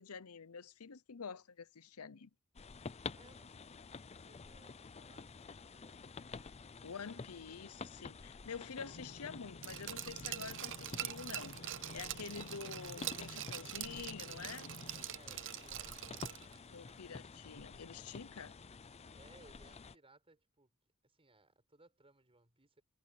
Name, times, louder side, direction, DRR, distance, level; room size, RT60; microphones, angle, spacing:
voice 1, 0.0-2.3 6.8-14.7 16.7-18.5, left 6 dB, 75° left, 0.8 m, -48 dB
sound 1, 2.6-20.0, left 4 dB, 30° left, 0.5 m, -50 dB
voice 2, 3.2-6.6 6.9-7.4 15.1-16.5 19.2-20.7 21.0-22.8, right 2 dB, 25° right, 5.4 m, -66 dB
sound 2, 8.8-15.0, left 1 dB, 50° left, 1.3 m, -54 dB
Glass, 9.6-16.6 16.9-17.0, right 13 dB, 60° right, 0.7 m, -44 dB
head